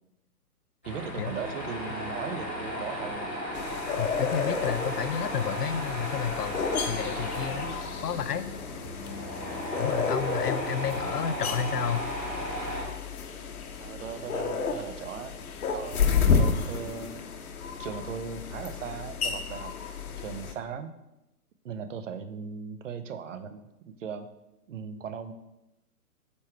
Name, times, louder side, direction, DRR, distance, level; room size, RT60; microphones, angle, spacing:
Tools, 0.8-12.8, equal, 10° left, 0.4 m, -35 dB
voice 1, 0.8-3.3 13.8-17.2 17.8-19.7 20.2-20.9 21.6-24.3 24.7-25.3, right 6 dB, 55° right, 10 dB, 0.8 m, -38 dB
sound 1, 3.5-20.5, left 5 dB, 70° left, 1.1 m, -31 dB
voice 2, 4.0-7.7 8.0-8.5 9.8-12.0, left 8 dB, 90° left, 13 dB, 0.7 m, -31 dB
8.4 x 3.2 x 4.7 m, 0.91 s
hypercardioid pair, 140°, 46 cm